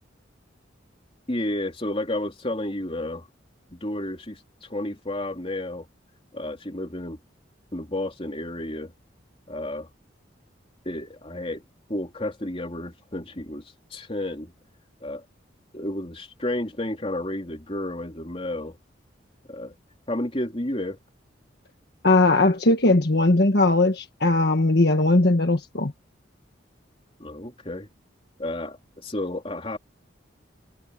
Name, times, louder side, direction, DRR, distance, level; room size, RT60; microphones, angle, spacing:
voice 1, 1.3-3.3 3.7-5.9 6.3-7.2 7.7-8.9 9.5-9.9 10.8-11.6 11.9-13.6 13.9-14.5 15.0-15.2 15.7-18.8 19.5-19.7 20.1-21.0 27.2-27.9 28.4-29.8, left 1 dB, 30° left, 3.4 m, -31 dB
voice 2, 22.0-25.9, left 2 dB, 55° left, 1.5 m, -19 dB
head